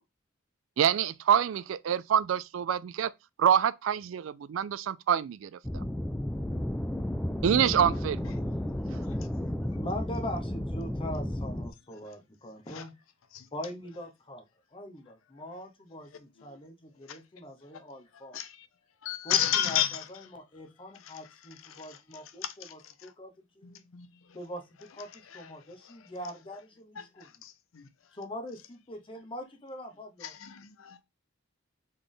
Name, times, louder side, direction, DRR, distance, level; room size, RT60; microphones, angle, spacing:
voice 1, 0.8-3.1 3.4-5.6 7.4-8.3, right 8 dB, 70° right, 0.3 m, -26 dB
sound 1, 5.6-11.7, left 1 dB, 5° left, 0.4 m, -33 dB
voice 2, 9.7-13.0 13.5-14.4 14.7-18.4 19.2-23.8 24.3-27.3 28.1-30.4, left 1 dB, 25° left, 0.8 m, -42 dB
voice 3, 19.0-20.0 21.7-21.8 22.6-22.7 23.6-24.1 27.4-27.8 30.2-31.0, left 11 dB, 85° left, 0.6 m, -31 dB
4.1 x 3.3 x 3.6 m
head